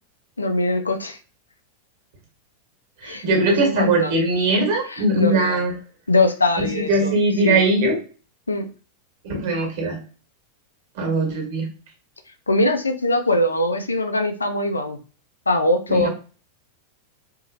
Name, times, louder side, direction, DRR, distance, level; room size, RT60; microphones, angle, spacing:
voice 1, 0.4-1.2 3.0-4.1 5.2-5.5 6.1-7.1 7.4-7.6 8.5-8.7 12.5-15.0 15.5-16.1, left 2 dB, 80° left, 7 dB, 0.5 m, -21 dB
voice 2, 3.0-5.8 6.6-8.0 9.2-10.0 10.9-11.7 15.9-16.1, right 2 dB, 50° right, 1 dB, 1.7 m, -21 dB
4.6 x 3.1 x 2.5 m, 0.37 s
figure-of-eight pair, 90°, 0 cm